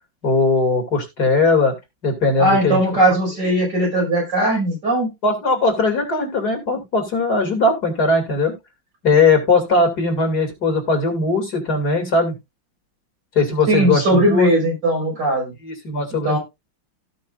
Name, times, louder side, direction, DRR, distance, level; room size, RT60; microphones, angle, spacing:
voice 1, 0.2-1.7 2.0-2.8 5.2-8.5 9.0-12.4 13.3-14.5 15.6-16.4, left 3 dB, 55° left, 4 dB, 3.1 m, -19 dB
voice 2, 2.4-5.1 13.7-15.5 16.2-16.4, right 1 dB, 60° right, -1 dB, 6.0 m, -18 dB
17.0 x 5.7 x 2.5 m, 0.22 s
omnidirectional pair, 2.1 m